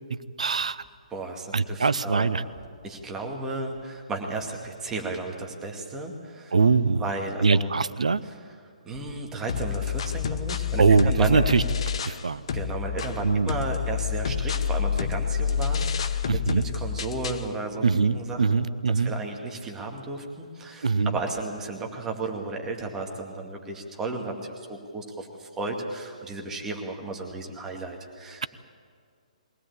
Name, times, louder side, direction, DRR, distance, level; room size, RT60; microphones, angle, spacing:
voice 1, 0.4-0.8 1.5-2.4 6.5-7.0 7.4-8.2 10.8-11.6 12.1-12.4 13.2-13.5 16.3-16.6 17.8-19.1 20.8-21.2, right 4 dB, 60° right, 17 dB, 0.8 m, -22 dB
voice 2, 1.1-2.5 2.8-6.5 7.0-7.7 8.2-8.4 8.9-11.4 12.5-16.2 16.7-17.9 18.1-18.6 18.9-28.4, right 3 dB, 10° right, 1 dB, 2.2 m, -34 dB
sound 1, 9.5-12.2 12.5-17.5, left 7 dB, 45° left, 1.0 m, -28 dB
22.5 x 17.5 x 8.6 m, 2.1 s
figure-of-eight pair, 130°, 4 cm